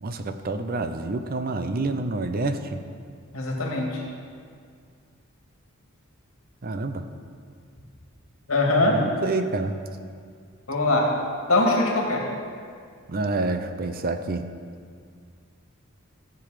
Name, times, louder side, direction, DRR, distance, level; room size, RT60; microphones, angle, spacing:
voice 1, 0.0-2.8 6.6-7.0 8.9-9.7 13.1-14.4, right 3 dB, 45° right, 8 dB, 0.6 m, -28 dB
voice 2, 3.3-4.0 8.5-9.0 10.7-11.1 11.5-12.3, left 2 dB, 75° left, -1 dB, 2.2 m, -22 dB
14.0 x 7.0 x 5.0 m, 2.1 s
head